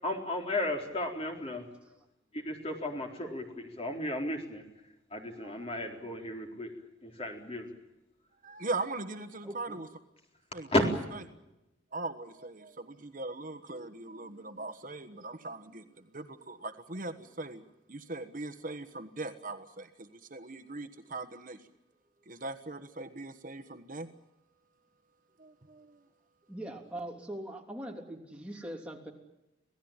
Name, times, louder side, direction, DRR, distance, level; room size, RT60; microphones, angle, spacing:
voice 1, 0.0-1.6 2.3-4.6 5.1-6.7 7.0-7.7 10.7-10.8, left 1 dB, 30° left, 2 dB, 4.1 m, -33 dB
voice 2, 8.4-9.9 10.5-10.7 11.9-17.6 17.9-21.6 22.3-24.1 25.4-26.0, right 2 dB, 45° right, 9 dB, 1.3 m, -40 dB
voice 3, 9.4-9.8 26.5-29.1, right 1 dB, 5° right, 0 dB, 3.2 m, -41 dB
26.5 x 17.5 x 8.9 m, 0.94 s
head